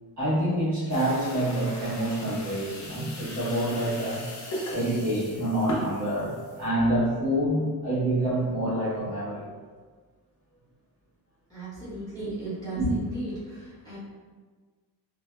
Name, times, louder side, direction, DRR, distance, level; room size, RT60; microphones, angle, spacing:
voice 1, 0.2-4.2 4.7-9.5 12.8-12.9, right 1 dB, 45° right, -10 dB, 1.4 m, -27 dB
sound 1, 0.9-6.7, left 1 dB, 45° left, 0.7 m, -38 dB
voice 2, 11.5-14.0, right 2 dB, 10° left, -12 dB, 1.2 m, -36 dB
2.7 x 2.3 x 2.2 m, 1.5 s
cardioid pair, 110°, 39 cm